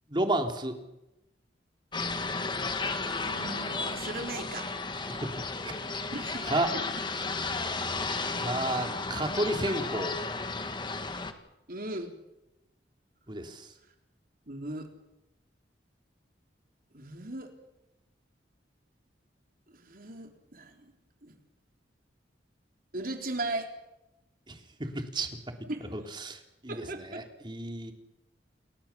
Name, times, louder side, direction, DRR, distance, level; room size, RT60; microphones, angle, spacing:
voice 1, 0.1-0.8 5.1-6.1 6.4-6.7 8.4-10.2 13.3-13.7 24.5-25.3 25.9-27.9, right 1 dB, 25° right, 4 dB, 3.2 m, -32 dB
sound 1, 1.9-11.3, left 3 dB, 25° left, 1.9 m, -33 dB
voice 2, 3.2-4.7 6.1-6.5 11.7-12.1 14.5-14.9 16.9-17.5 19.7-20.9 21.2-21.4 22.9-23.7 25.7-25.9 26.7-27.3, right 2 dB, 50° right, 4 dB, 3.8 m, -37 dB
30.0 x 20.5 x 7.2 m, 0.93 s
head